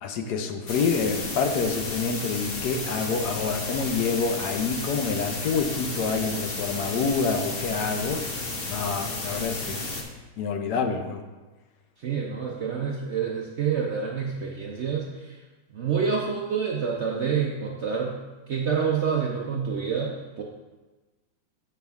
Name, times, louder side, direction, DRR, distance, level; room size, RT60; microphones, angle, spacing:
voice 1, 0.0-8.2 8.7-9.9 10.4-11.2, left 5 dB, 75° left, 5 dB, 1.2 m, -27 dB
sound 1, 0.7-10.0, left 2 dB, 45° left, 0.9 m, -33 dB
voice 2, 12.0-15.4 15.7-18.2 18.5-20.4, right 6 dB, 60° right, -1 dB, 0.7 m, -27 dB
7.3 x 5.8 x 3.5 m, 1.2 s
omnidirectional pair, 1.8 m